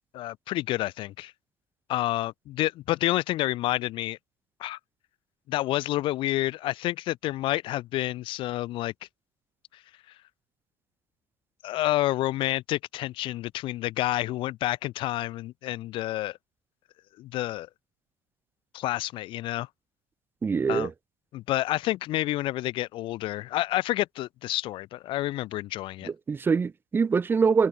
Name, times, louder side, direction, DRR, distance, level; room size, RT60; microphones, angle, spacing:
voice 1, 0.1-1.3 1.9-4.2 4.6-4.8 5.5-8.9 11.6-16.4 17.2-17.7 18.7-19.7 20.7-20.9 21.3-26.1, left 16 dB, 50° left, 0.4 m, -29 dB
voice 2, 20.4-20.9 26.0-27.7, right 5 dB, 20° right, 1.0 m, -24 dB
cardioid pair, 155°, 11 cm